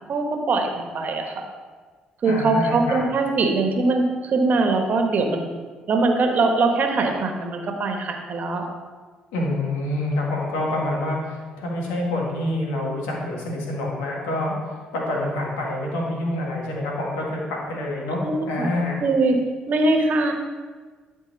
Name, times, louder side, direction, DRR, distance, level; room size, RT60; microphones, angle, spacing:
voice 1, 0.1-1.4 2.2-5.4 5.9-8.7 18.2-18.7 19.0-19.4 19.7-20.3, right 3 dB, 55° right, 4 dB, 1.3 m, -22 dB
voice 2, 2.2-3.0 9.3-17.4 17.7-18.2 18.5-19.0, left 1 dB, 80° left, -2 dB, 1.8 m, -27 dB
11.5 x 4.6 x 4.1 m, 1.4 s
hypercardioid pair, 55°, 4 cm